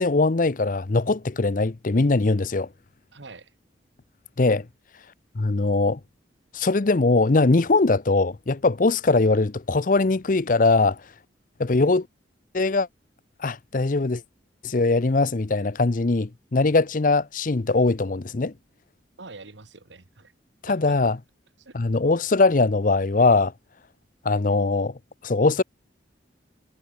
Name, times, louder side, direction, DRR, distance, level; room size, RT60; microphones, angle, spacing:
voice 1, 0.0-2.7 4.4-4.7 5.4-6.0 6.5-11.0 11.6-12.1 12.5-12.9 13.4-14.2 14.6-18.5 20.6-21.2 21.7-23.5 24.2-24.9 25.2-25.6, left 3 dB, 45° left, 0.7 m, -21 dB
voice 2, 3.1-3.5 19.2-20.3 20.7-21.0 21.6-21.8, right 3 dB, 80° right, 1.7 m, -45 dB
head